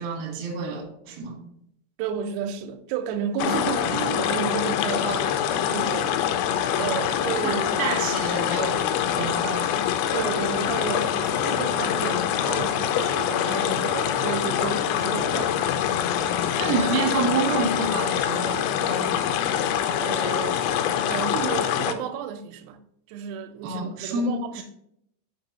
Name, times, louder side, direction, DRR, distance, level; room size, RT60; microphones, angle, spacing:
voice 1, 0.0-1.5 3.2-3.6 3.9-4.3 5.0-5.3 7.4-8.9 9.1-9.8 13.4-13.8 16.6-19.2 23.6-24.6, right 4 dB, 60° right, 2.7 m, -29 dB
voice 2, 2.0-5.4 5.7-6.2 6.7-7.9 10.1-13.4 13.8-15.7 20.0-20.6 21.1-22.8 23.1-24.6, right 7 dB, 90° right, 3.4 m, -32 dB
sound 1, 3.4-21.9, left 9 dB, 85° left, 3.2 m, -25 dB
6.2 x 6.0 x 3.9 m
omnidirectional pair, 5.9 m